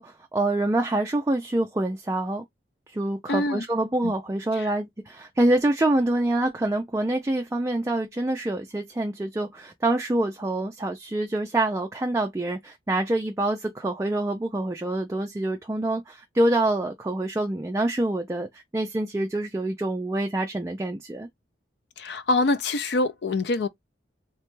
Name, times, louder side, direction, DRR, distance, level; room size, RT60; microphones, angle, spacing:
voice 1, 0.0-2.4 2.9-21.3, right 1 dB, 15° right, 0.3 m, -26 dB
voice 2, 3.3-3.6 4.0-4.1 4.5-4.7 22.0-23.7, left 2 dB, 60° left, 0.4 m, -25 dB
2.9 x 2.2 x 3.0 m
head